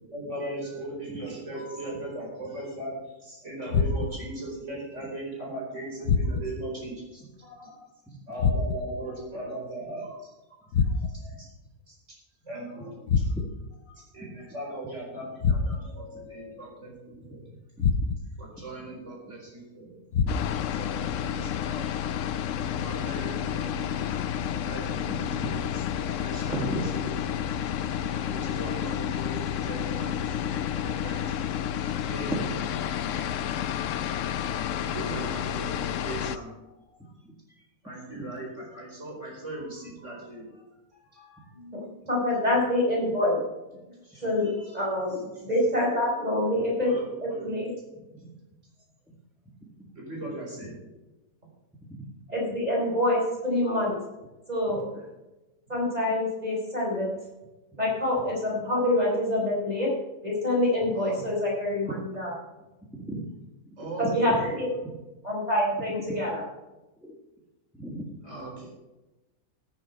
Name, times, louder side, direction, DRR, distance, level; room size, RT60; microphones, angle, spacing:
voice 1, 0.0-7.8 8.3-10.3 10.6-11.5 11.9-12.0 12.4-13.3 13.9-17.4 18.4-19.9 20.7-22.0 22.5-24.2 24.5-26.8 27.3-27.5 28.0-32.6 34.8-37.2 37.8-40.7 40.9-41.5 44.0-44.8 45.1-45.4 46.8-47.7 49.9-50.8 60.9-61.2 63.8-64.8 68.2-68.7, right 1 dB, 50° right, -2 dB, 5.0 m, -39 dB
sound 1, 3.7-4.3 6.0-6.7 8.4-9.0 10.7-11.4 13.1-13.7 15.4-16.0 17.8-18.4 20.1-20.7, left 5 dB, 80° left, 1.4 m, -26 dB
voice 2, 17.3-17.9 25.1-25.4 26.5-27.1 32.3-32.5 37.2-37.3 41.4-41.5 47.9-48.3 49.6-49.7 51.9-52.1 54.7-54.8 61.9-62.2 62.9-63.2 64.3-64.4 66.0-66.2 67.0-67.1 67.7-68.1, right 1 dB, ahead, -2 dB, 2.1 m, -35 dB
sound 2, 20.3-36.4, left 9 dB, 65° left, 0.9 m, -30 dB
voice 3, 41.5-43.4 44.2-46.9 47.2-47.7 52.3-54.0 54.5-54.9 55.7-57.2 57.8-60.0 60.2-62.3 64.0-64.7 65.2-66.4, left 1 dB, 25° right, -2 dB, 5.0 m, -26 dB
14.0 x 9.8 x 4.5 m, 1.0 s
omnidirectional pair, 1.6 m